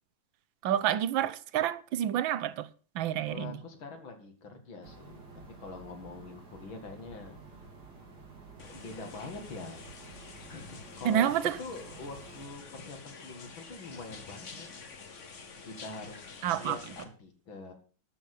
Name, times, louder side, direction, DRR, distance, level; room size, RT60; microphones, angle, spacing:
voice 1, 0.6-2.7 2.9-3.6 11.0-11.6 16.4-16.8, right 11 dB, 85° right, 1.5 m, -28 dB
voice 2, 3.3-5.2 5.6-7.4 8.7-9.8 10.5-14.7 15.6-16.3 16.6-17.7, left 3 dB, 85° left, 3.0 m, -44 dB
sound 1, 4.8-12.5, right 3 dB, 55° right, 3.0 m, -51 dB
sound 2, 8.6-17.0, left 4 dB, 40° left, 1.6 m, -48 dB
12.5 x 6.5 x 6.8 m
omnidirectional pair, 2.1 m